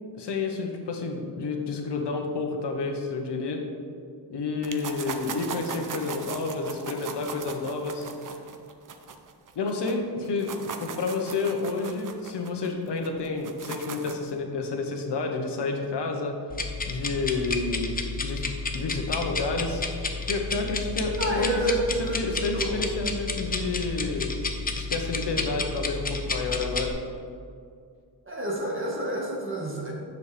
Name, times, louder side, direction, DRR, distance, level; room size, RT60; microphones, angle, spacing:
voice 1, 0.1-3.6 4.3-8.1 9.5-16.3 16.9-17.9 18.2-18.4 18.7-19.8 20.3-21.6 22.1-24.3 24.8-27.0, left 3 dB, 75° left, 3 dB, 1.1 m, -30 dB
sound 1, 4.6-9.9 10.2-14.3, right 5 dB, 50° right, 0.6 m, -38 dB
sound 2, 16.5-26.9, left 3 dB, 20° left, 0.6 m, -31 dB
voice 2, 21.2-22.7 28.2-29.9, right 1 dB, 30° right, -2 dB, 1.6 m, -29 dB
9.9 x 6.6 x 3.3 m, 2.3 s
wide cardioid pair, 150°, 42 cm